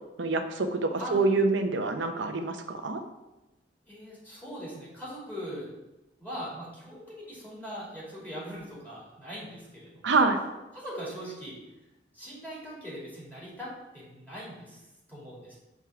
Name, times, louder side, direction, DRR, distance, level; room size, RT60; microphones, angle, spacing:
voice 1, 0.2-3.0 10.0-10.4, right 3 dB, 85° right, 6 dB, 0.7 m, -26 dB
voice 2, 1.0-1.3 3.8-5.7 6.2-10.2 10.7-11.6 12.1-14.8 15.1-15.6, equal, 10° left, -7 dB, 2.4 m, -41 dB
6.1 x 3.6 x 5.7 m, 1.0 s
head